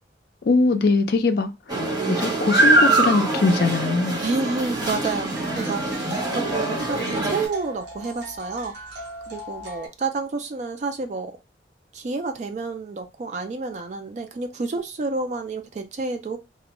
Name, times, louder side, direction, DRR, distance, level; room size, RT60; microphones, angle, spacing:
voice 1, 0.4-1.5 2.2-4.2, left 3 dB, 55° left, 0.4 m, -21 dB
sound 1, 1.7-7.5, right 2 dB, 20° right, 0.8 m, -23 dB
voice 2, 4.2-8.8 9.3-11.3 11.9-16.4, right 3 dB, 40° right, 0.3 m, -29 dB
sound 2, 4.6-9.9, left 1 dB, 65° right, 0.7 m, -38 dB
2.4 x 2.1 x 2.9 m
head